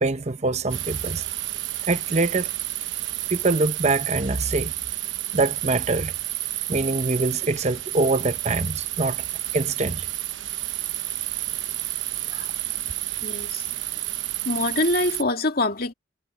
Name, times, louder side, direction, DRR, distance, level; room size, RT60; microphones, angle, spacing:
voice 1, 0.0-1.2 1.9-2.5 3.3-4.7 5.3-6.1 6.7-9.2 9.5-10.1, right 3 dB, 35° right, 0.8 m, -24 dB
sound 1, 0.7-15.2, right 14 dB, 75° right, 1.0 m, -30 dB
voice 2, 13.2-13.7 14.4-15.9, left 2 dB, 50° left, 2.6 m, -25 dB
head